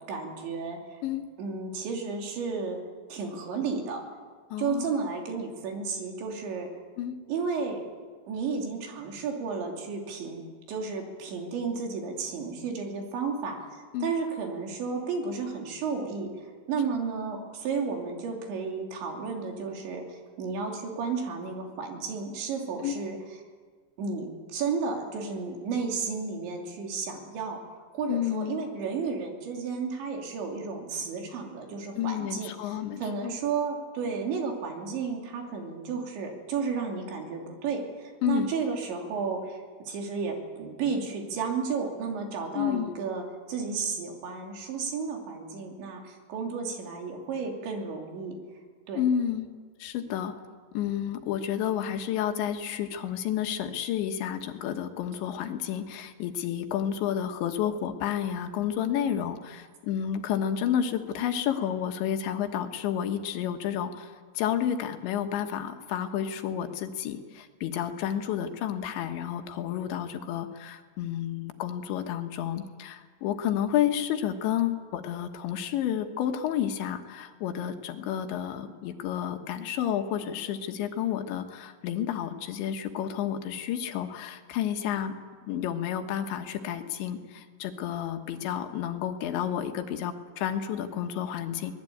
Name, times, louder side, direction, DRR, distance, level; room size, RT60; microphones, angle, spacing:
voice 1, 0.1-1.0 1.4-2.8 3.1-4.0 4.6-6.7 7.3-7.8 8.3-13.6 14.0-16.3 16.7-23.2 24.0-27.6 27.9-48.4 48.9-49.0, right 5 dB, 80° right, 2 dB, 5.3 m, -32 dB
voice 2, 4.5-4.9 7.0-7.2 13.9-14.1 22.8-23.0 28.1-28.6 32.0-33.3 38.2-38.5 42.6-43.0 49.0-49.5 49.8-50.4 50.8-85.2 85.4-91.7, left 9 dB, 80° left, 6 dB, 3.7 m, -30 dB
23.5 x 19.5 x 8.7 m, 1.6 s
omnidirectional pair, 5.1 m